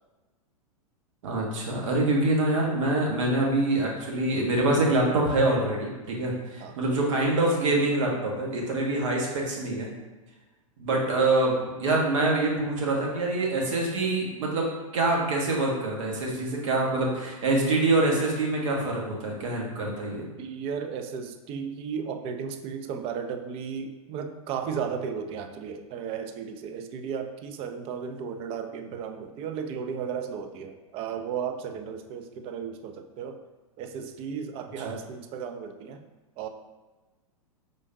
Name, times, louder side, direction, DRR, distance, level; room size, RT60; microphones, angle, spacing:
voice 1, 1.2-9.9 10.8-20.3 34.8-34.9, right 2 dB, 60° right, -2 dB, 1.3 m, -25 dB
voice 2, 20.4-33.4 33.8-36.0 36.4-36.5, right 7 dB, 35° right, 6 dB, 0.4 m, -34 dB
4.9 x 3.8 x 2.7 m, 1.2 s
figure-of-eight pair, 100°, 18 cm